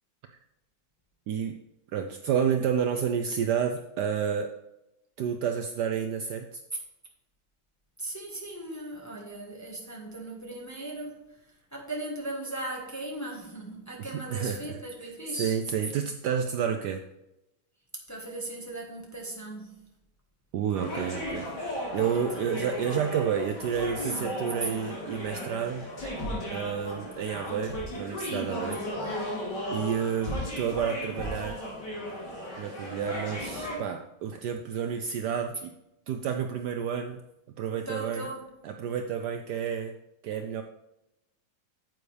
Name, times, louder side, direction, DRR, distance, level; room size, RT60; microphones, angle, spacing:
voice 1, 1.9-4.5 5.2-6.6 14.0-17.0 20.5-25.9 26.5-28.8 29.7-31.6 32.6-35.7 36.1-37.2 37.6-38.3 38.6-39.9 40.2-40.6, right 7 dB, 70° right, 6 dB, 1.0 m, -30 dB
voice 2, 8.0-11.4 11.7-15.6 18.1-19.8 22.1-22.6 24.1-24.4 28.7-29.3 37.9-38.4, right 1 dB, 10° left, -1 dB, 1.1 m, -38 dB
sound 1, 20.7-33.8, equal, 60° left, 3.6 m, -35 dB
9.4 x 7.8 x 3.3 m, 0.90 s
omnidirectional pair, 2.1 m